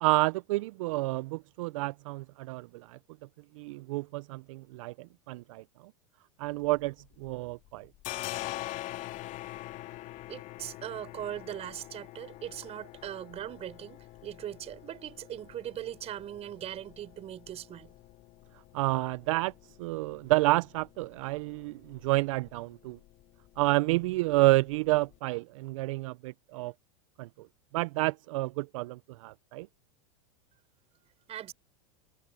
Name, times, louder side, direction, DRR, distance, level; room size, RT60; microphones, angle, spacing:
voice 1, 0.0-3.0 3.6-5.6 6.4-7.9 18.7-19.5 19.8-23.0 23.6-26.7 27.2-27.5 27.7-29.7, right 21 dB, 65° right, 0.6 m, -29 dB
sound 1, 6.5-7.4 7.6-25.2, left 17 dB, 45° left, 4.6 m, -45 dB
voice 2, 10.3-17.9 31.3-31.5, right 11 dB, 35° right, 5.6 m, -40 dB
hypercardioid pair, 115°, 18 cm